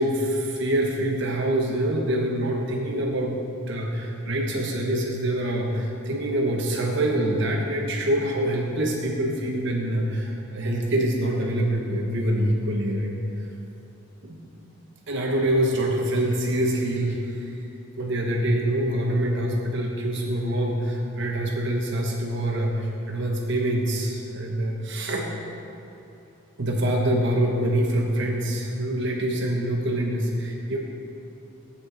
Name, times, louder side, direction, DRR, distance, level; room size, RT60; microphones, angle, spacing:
voice 1, 0.0-3.4 3.7-13.5 14.2-14.4 15.1-17.5 18.0-25.3 26.6-30.8, right 1 dB, 55° right, -1 dB, 0.9 m, -25 dB
12.5 x 8.4 x 3.9 m, 2.9 s
head